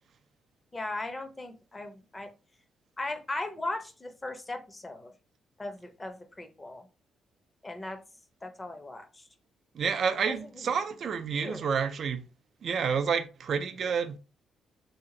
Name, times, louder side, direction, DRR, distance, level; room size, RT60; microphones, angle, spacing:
voice 1, 0.7-2.3 3.0-5.1 5.6-6.9 7.6-8.0 8.4-9.3 10.3-10.7 11.3-11.7, left 2 dB, 20° left, 0.7 m, -38 dB
voice 2, 9.7-12.2 12.6-14.2, right 6 dB, 55° right, 0.4 m, -29 dB
2.8 x 2.5 x 3.8 m
cardioid pair, 90°, 0 cm